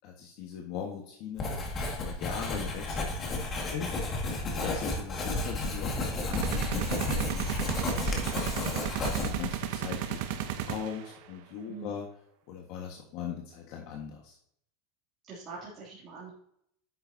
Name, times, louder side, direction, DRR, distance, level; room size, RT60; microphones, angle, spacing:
voice 1, 0.0-1.5 1.9-3.5 3.7-4.0 4.4-7.5 8.0-8.5 9.0-12.0 12.5-14.4, left 7 dB, 55° left, 0 dB, 1.6 m, -40 dB
Writing, 1.4-9.6, left 2 dB, 25° left, 2.1 m, -32 dB
sound 1, 6.3-11.2, right 11 dB, 65° right, 1.0 m, -34 dB
voice 2, 11.7-12.0 15.3-16.3, right 4 dB, 30° right, -9 dB, 3.0 m, -43 dB
10.0 x 6.9 x 2.8 m, 0.67 s
supercardioid pair, 150°, 0 cm